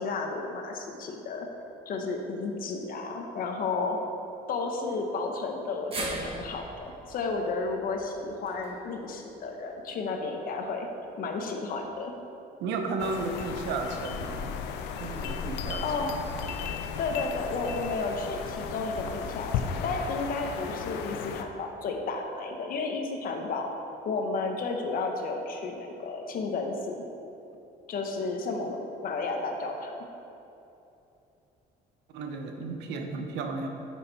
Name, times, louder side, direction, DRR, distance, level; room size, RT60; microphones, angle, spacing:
voice 1, 0.0-1.5 1.9-4.0 4.5-10.9 11.2-12.1 15.8-16.1 17.0-23.7 24.0-27.0 27.9-29.9, left 3 dB, 60° left, 3 dB, 1.1 m, -32 dB
sound 1, 5.9-10.2 10.5-10.6 11.8-11.9, right 2 dB, 35° right, 1.6 m, -41 dB
voice 2, 12.6-14.5 15.0-15.8 32.1-33.7, right 3 dB, 90° right, 4 dB, 1.0 m, -33 dB
sound 2, 13.0-21.4, left 6 dB, 90° left, 0.6 m, -35 dB
8.6 x 6.6 x 4.2 m, 2.9 s
cardioid pair, 110°, 17 cm